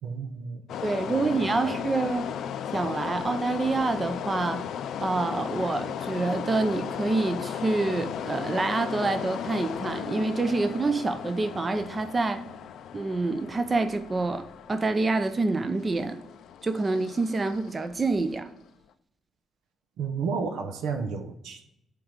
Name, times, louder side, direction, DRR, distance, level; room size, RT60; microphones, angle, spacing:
voice 1, 0.0-1.4 1.6-1.8 20.0-21.7, right 5 dB, 85° right, 0.9 m, -33 dB
sound 1, 0.7-18.4, left 9 dB, 75° left, 0.4 m, -36 dB
voice 2, 0.8-2.3 2.7-4.6 5.0-12.4 12.9-16.2 16.6-18.5, right 3 dB, 30° right, 0.6 m, -27 dB
7.6 x 3.7 x 5.2 m
cardioid pair, 90°, 0 cm